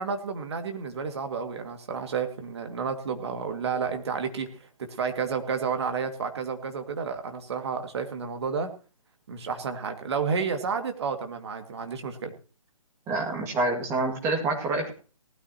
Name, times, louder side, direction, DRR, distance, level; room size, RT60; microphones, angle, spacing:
voice 1, 0.0-8.7 9.3-12.3, right 5 dB, 50° right, 6 dB, 2.2 m, -31 dB
voice 2, 13.1-14.9, right 2 dB, 15° right, 1 dB, 2.2 m, -27 dB
18.5 x 12.5 x 2.9 m, 0.36 s
figure-of-eight pair, 145°, 18 cm